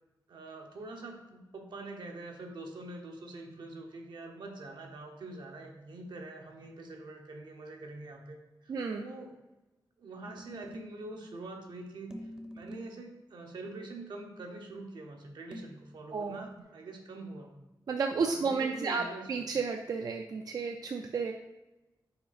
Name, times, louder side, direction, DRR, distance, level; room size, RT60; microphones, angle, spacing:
voice 1, 0.3-9.3 10.0-17.5 18.1-19.5, right 2 dB, 80° right, 2 dB, 1.0 m, -45 dB
voice 2, 8.7-9.0 16.1-16.4 17.9-21.3, right 5 dB, 55° right, 4 dB, 0.4 m, -32 dB
sound 1, 10.2-11.1 12.1-13.1 15.5-16.6, equal, 10° right, 0.6 m, -47 dB
5.6 x 4.7 x 4.1 m, 1.1 s
wide cardioid pair, 150°, 8 cm